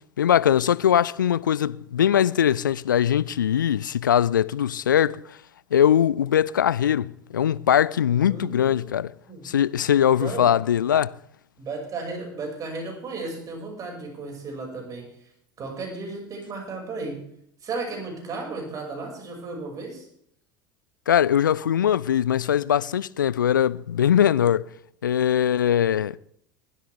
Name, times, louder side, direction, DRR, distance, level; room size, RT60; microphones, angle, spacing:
voice 1, 0.2-5.4 5.7-9.1 9.4-11.1 21.1-24.6 25.0-26.2, left 9 dB, 75° left, 0.4 m, -21 dB
voice 2, 8.3-9.0 9.3-9.5 10.2-10.6 11.6-15.3 15.6-17.2 17.6-20.1, right 3 dB, 35° right, 5.7 m, -34 dB
20.0 x 12.5 x 3.5 m
figure-of-eight pair, 70°, 11 cm